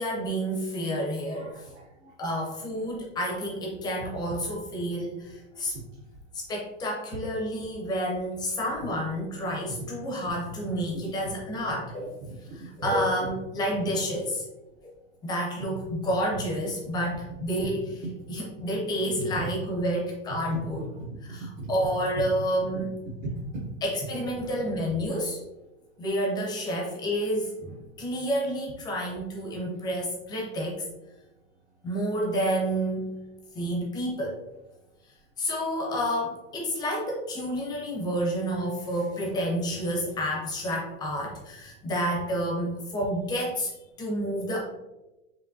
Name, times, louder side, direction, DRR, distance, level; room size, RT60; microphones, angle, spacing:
voice 1, 0.0-1.7 2.2-5.8 6.3-12.2 12.5-14.4 14.8-14.9 15.2-18.0 18.3-20.9 21.2-23.0 23.8-25.4 26.0-30.8 31.8-33.2 33.5-34.4 35.4-43.7 44.0-44.6, equal, 10° left, -2 dB, 0.5 m, -29 dB
voice 2, 1.2-2.1 12.5-12.6 20.5-20.7 21.0-21.1 21.6-21.7 23.1-23.7 26.5-26.6, right 2 dB, 45° right, -4 dB, 0.8 m, -38 dB
4.8 x 3.0 x 2.6 m, 1.0 s
supercardioid pair, 170°, 36 cm